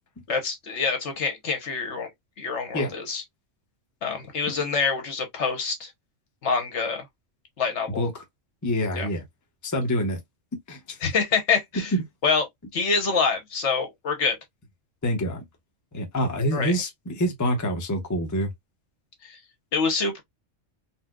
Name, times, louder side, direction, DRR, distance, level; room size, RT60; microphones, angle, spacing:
voice 1, 0.3-2.1 2.4-3.2 4.0-5.9 6.4-7.0 7.6-8.0 8.9-9.1 11.0-11.9 12.2-12.5 12.7-14.4 16.5-16.7 19.2-19.4 19.7-20.2, left 5 dB, 65° left, 1.2 m, -26 dB
voice 2, 8.6-9.2 9.6-10.2 10.7-11.0 11.9-12.0 15.0-15.4 15.9-18.5, equal, 20° left, 0.6 m, -26 dB
4.3 x 2.1 x 2.2 m
omnidirectional pair, 1.3 m